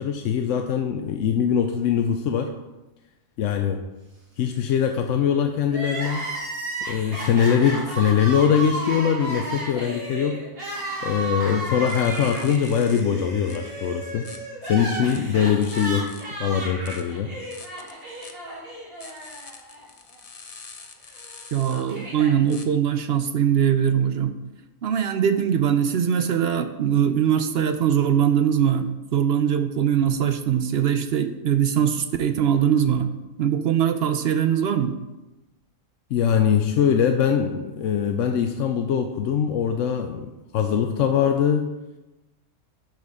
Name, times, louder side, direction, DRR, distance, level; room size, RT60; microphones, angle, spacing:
voice 1, 0.0-2.5 3.4-3.9 4.4-6.3 6.9-10.4 11.0-14.3 14.6-16.1 16.4-17.3 36.1-41.7, left 8 dB, 75° left, 5 dB, 0.9 m, -22 dB
Crying sobbing, 5.7-19.8 20.1-20.2 21.2-22.3, right 2 dB, 45° right, 2.4 m, -33 dB
sound 1, 11.9-13.0 13.5-14.4 15.0-16.3 16.6-18.3 19.0-22.6 27.7-27.8, left 4 dB, 40° left, 0.6 m, -45 dB
voice 2, 21.5-24.3 24.8-33.1 33.4-35.0, right 8 dB, 60° right, 9 dB, 0.7 m, -21 dB
11.0 x 4.3 x 4.8 m, 1.0 s
omnidirectional pair, 1.3 m